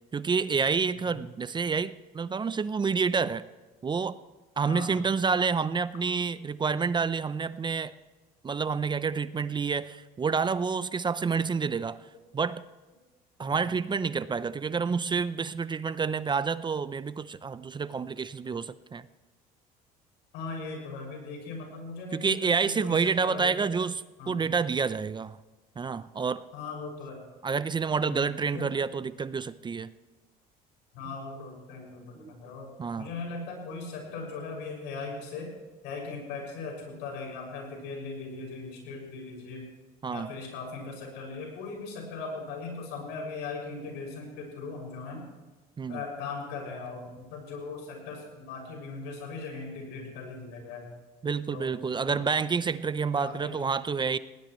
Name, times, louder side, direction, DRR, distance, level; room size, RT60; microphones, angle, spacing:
voice 1, 0.1-3.4 3.8-4.2 4.6-7.9 8.4-12.0 12.3-12.6 13.4-19.1 22.1-24.0 24.3-25.4 25.8-26.4 27.4-29.9 32.2-32.3 32.8-33.1 40.0-40.3 45.8-46.0 51.2-54.2, right 5 dB, 25° right, 15 dB, 0.6 m, -28 dB
voice 2, 20.3-23.7 24.2-24.4 26.5-27.2 28.0-28.2 28.5-28.7 30.9-32.7 33.0-35.5 35.8-39.6 40.1-45.2 45.9-50.9 51.5-52.2 53.2-53.6, left 4 dB, 85° left, 0 dB, 6.4 m, -39 dB
20.0 x 18.5 x 3.2 m, 1.2 s
supercardioid pair, 90°, 18 cm